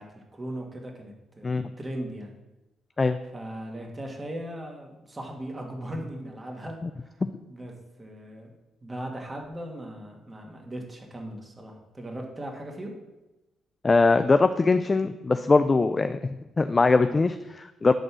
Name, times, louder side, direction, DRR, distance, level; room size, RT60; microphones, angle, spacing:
voice 1, 0.0-2.4 3.3-7.1 7.5-8.5 8.8-12.9, right 1 dB, 20° right, 1 dB, 2.2 m, -38 dB
voice 2, 13.8-17.9, left 3 dB, 25° left, 10 dB, 0.4 m, -22 dB
11.0 x 4.3 x 6.2 m, 1.0 s
cardioid pair, 90°, 0 cm